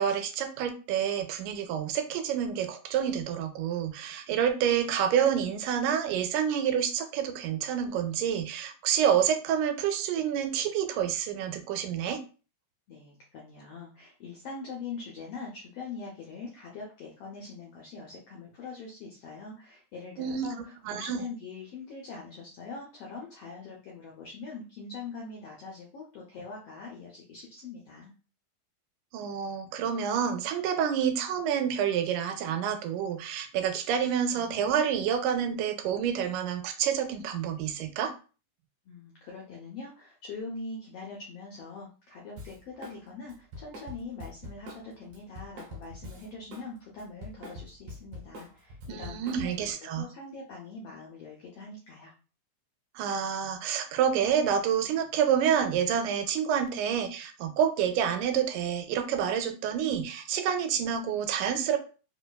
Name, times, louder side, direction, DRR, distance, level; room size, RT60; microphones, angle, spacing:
voice 1, 0.0-12.2 20.2-20.5 20.9-21.2 29.1-38.1 48.9-50.1 53.0-61.8, right 8 dB, 85° right, 7 dB, 2.0 m, -28 dB
voice 2, 12.9-28.1 38.8-52.1, left 4 dB, 90° left, -2 dB, 1.3 m, -43 dB
Drum kit, 42.4-43.0 43.3-46.7 47.0-49.7, left 1 dB, 65° right, 1.5 m, -44 dB
4.8 x 2.2 x 2.2 m, 0.35 s
omnidirectional pair, 3.5 m